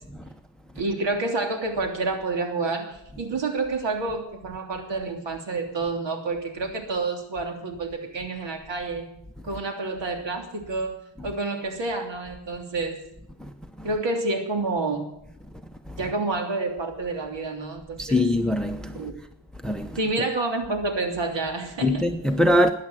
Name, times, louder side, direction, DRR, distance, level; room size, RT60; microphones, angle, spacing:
voice 1, 0.8-9.1 9.4-13.0 13.8-15.1 16.0-18.3 18.9-19.1 20.0-22.0, right 3 dB, 65° right, 3.2 m, -29 dB
voice 2, 18.0-19.1 19.6-20.0 21.8-22.7, left 1 dB, ahead, 0.9 m, -22 dB
13.0 x 10.0 x 9.3 m
cardioid pair, 90°, 46 cm